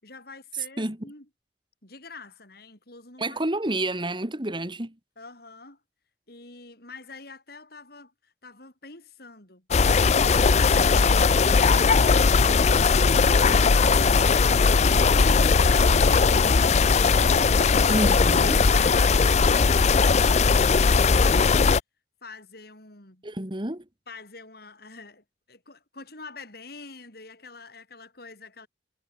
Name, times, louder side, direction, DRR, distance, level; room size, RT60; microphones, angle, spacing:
voice 1, 0.0-1.3 1.8-3.4 5.2-5.8 6.3-16.7 22.2-23.2 24.1-28.7, left 3 dB, 55° left, 6.4 m, -47 dB
voice 2, 3.2-4.9 17.9-18.7 23.2-23.8, right 1 dB, 25° right, 2.3 m, -29 dB
sound 1, 9.7-21.8, left 4 dB, 40° left, 0.5 m, -19 dB
head